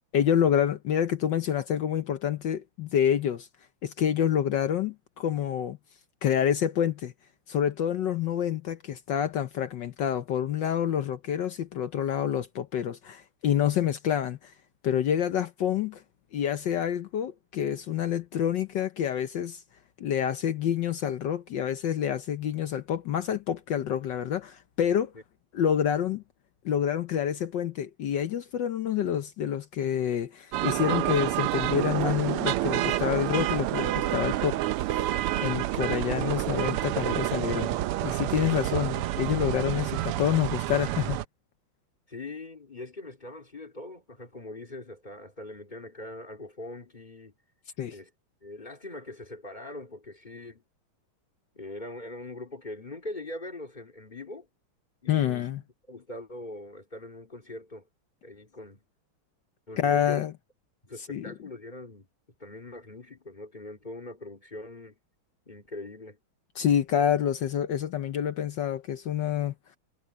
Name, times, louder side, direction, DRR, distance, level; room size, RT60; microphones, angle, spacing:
voice 1, 0.1-3.5 3.8-5.8 6.2-7.1 7.5-14.5 14.8-16.0 16.3-19.6 20.0-25.1 25.5-26.2 26.6-34.6 35.4-37.8 38.0-41.2 47.8-47.9 55.1-55.6 59.8-60.3 61.1-61.3 66.6-69.5, left 9 dB, 65° left, 1.4 m, -27 dB
sound 1, 30.5-41.3, right 14 dB, 90° right, 1.6 m, -28 dB
voice 2, 42.1-47.3 47.9-48.1 48.4-50.6 51.5-54.5 55.0-55.5 55.9-57.9 58.2-58.8 59.7-60.2 60.8-62.1 62.4-64.9 65.5-66.2, left 2 dB, 20° left, 3.0 m, -42 dB
omnidirectional pair, 2.4 m